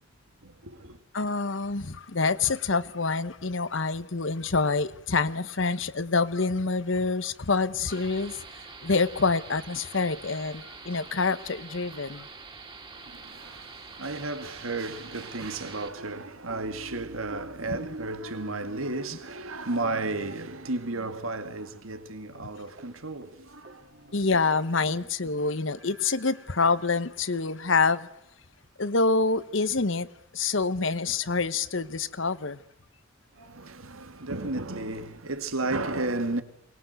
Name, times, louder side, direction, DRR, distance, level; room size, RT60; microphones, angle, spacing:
voice 1, 0.4-1.0 12.9-24.0 33.4-36.4, right 2 dB, 90° right, 2.1 m, -33 dB
voice 2, 1.1-8.5 8.8-12.3 17.7-17.8 24.1-28.1 28.8-30.1 30.3-32.6, left 4 dB, 65° left, 1.1 m, -26 dB
sound 1, 7.9-15.9, right 4 dB, 25° right, 2.8 m, -45 dB
sound 2, 16.5-19.4 19.8-21.7 21.9-22.0 22.3-22.5 22.8-23.0 23.2-24.9 25.7-27.3 28.0-28.9, equal, 50° right, 2.4 m, -50 dB
23.0 x 20.5 x 8.1 m
head